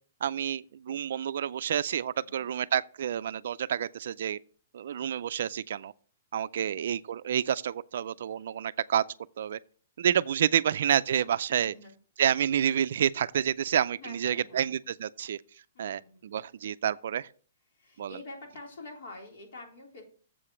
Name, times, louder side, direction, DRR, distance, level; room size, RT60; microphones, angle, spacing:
voice 1, 0.2-4.4 4.7-5.9 6.3-9.0 9.4-9.6 10.0-11.7 12.2-15.4 15.8-17.3 18.0-18.1, right 9 dB, 65° right, 0.3 m, -29 dB
voice 2, 2.2-2.5 6.5-7.1 11.5-11.9 14.0-14.8 15.7-16.4 17.7-20.0, left 2 dB, 55° left, 3.5 m, -48 dB
7.5 x 5.0 x 7.1 m
hypercardioid pair, 165°, 0 cm